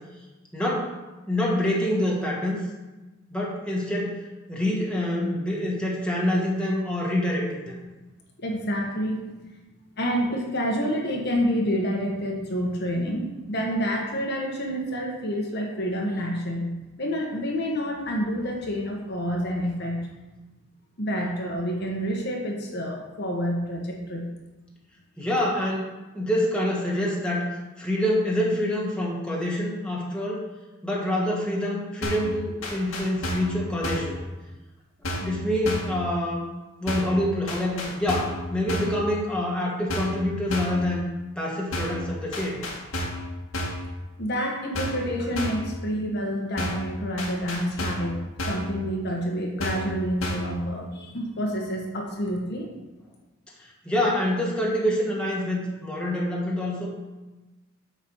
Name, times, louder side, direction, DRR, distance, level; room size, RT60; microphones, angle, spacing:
voice 1, 0.5-0.9 1.3-2.6 3.3-4.2 4.5-7.8 25.2-27.5 27.8-30.4 30.8-34.2 35.2-36.4 36.8-41.1 41.3-42.6 53.6-56.9, left 1 dB, 5° left, -4 dB, 1.7 m, -26 dB
voice 2, 8.4-9.2 10.0-20.1 21.0-24.3 44.2-52.7, equal, 55° left, -1 dB, 1.4 m, -28 dB
sound 1, 32.0-32.3 32.6-33.5 33.8-34.2 35.0-35.4 35.6-36.0 36.9-37.2 37.5-38.4 38.7-39.0 39.9-40.2 40.5-40.8 41.7-42.0 42.3-43.3 43.5-43.9 44.7-45.1 45.4-45.7 46.6-46.9 47.2-48.1 48.4-48.7 49.6-49.9 50.2-50.5, left 1 dB, 80° left, 2.0 m, -31 dB
8.3 x 4.8 x 6.1 m, 1.1 s
head